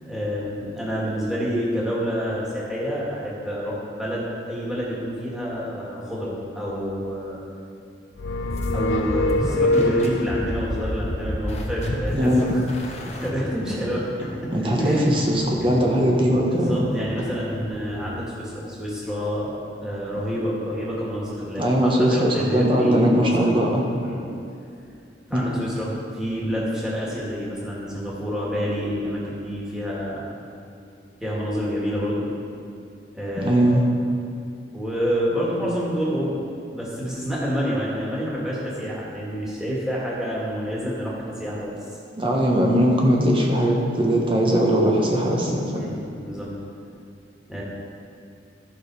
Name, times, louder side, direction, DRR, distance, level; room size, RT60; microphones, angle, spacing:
voice 1, 0.0-7.4 8.7-12.6 12.9-14.0 14.6-15.3 15.6-15.7 16.4-23.7 24.0-24.2 24.8-24.9 25.3-30.3 31.2-32.3 33.1-33.8 34.7-36.4 36.7-41.7 45.8-46.5 47.5-47.6, equal, 5° right, -7 dB, 2.2 m, -28 dB
sound 1, 8.2-10.6, left 1 dB, 85° left, 0.6 m, -24 dB
sound 2, 8.5-18.2, left 1 dB, 35° left, 1.1 m, -32 dB
voice 2, 12.1-12.5 14.5-16.8 21.6-23.8 25.3-25.4 33.4-33.8 42.1-45.8, equal, 25° right, -1 dB, 1.2 m, -20 dB
13.0 x 6.4 x 4.9 m, 2.5 s
head